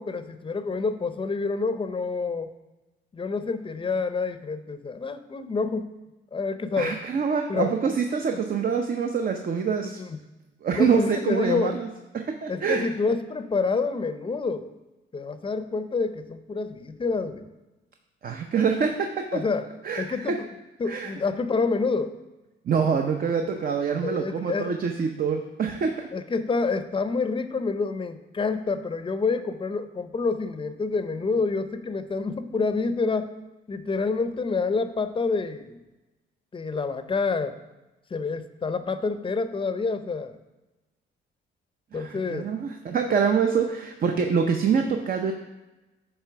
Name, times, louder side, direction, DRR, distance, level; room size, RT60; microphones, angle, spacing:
voice 1, 0.0-2.5 3.1-5.9 6.3-7.0 7.5-7.7 10.0-10.2 10.8-11.8 12.5-14.7 15.1-17.5 19.3-19.7 20.0-20.5 20.8-22.2 24.0-24.7 26.1-33.3 33.7-35.8 36.5-37.6 38.1-40.4 41.9-42.5, left 4 dB, 25° left, 10 dB, 0.6 m, -28 dB
voice 2, 6.8-10.0 10.6-11.9 12.1-12.9 18.2-19.4 19.8-20.4 20.9-21.1 22.7-26.1 41.9-45.3, right 6 dB, 45° right, 5 dB, 0.6 m, -25 dB
9.7 x 3.3 x 5.8 m, 1.1 s
cardioid pair, 90°, 20 cm